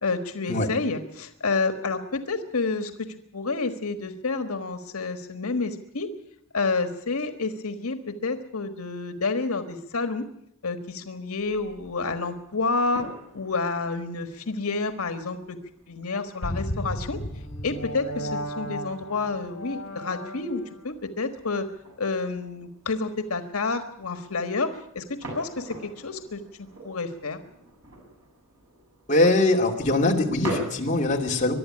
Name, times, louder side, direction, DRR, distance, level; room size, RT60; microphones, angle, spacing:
voice 1, 0.0-6.1 6.5-10.2 10.6-13.1 13.3-15.6 15.9-17.2 17.6-21.7 22.0-26.4 26.8-27.4, left 3 dB, 85° left, 8 dB, 1.5 m, -29 dB
sound 1, 11.3-30.6, right 1 dB, 90° right, 7.0 m, -44 dB
sound 2, 16.4-20.8, equal, 60° left, 4.1 m, -34 dB
voice 2, 29.1-31.5, left 2 dB, 35° left, 0 dB, 2.6 m, -22 dB
22.5 x 12.0 x 9.9 m, 0.76 s
head